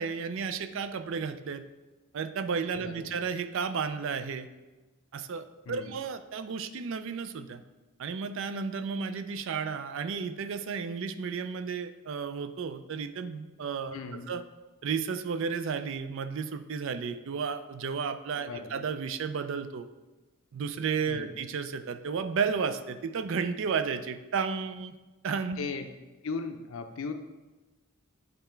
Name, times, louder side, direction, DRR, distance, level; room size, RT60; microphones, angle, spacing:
voice 1, 0.0-1.6 2.1-4.5 5.1-7.6 8.0-14.0 14.3-14.4 14.8-19.9 20.5-25.0 25.2-25.7, right 5 dB, 60° right, 11 dB, 0.4 m, -33 dB
voice 2, 2.8-3.2 5.7-5.9 13.9-14.3 18.4-18.8 21.1-21.4 25.6-25.9 26.2-27.1, left 4 dB, 65° left, 7 dB, 0.5 m, -37 dB
8.6 x 3.3 x 4.5 m, 1.2 s
head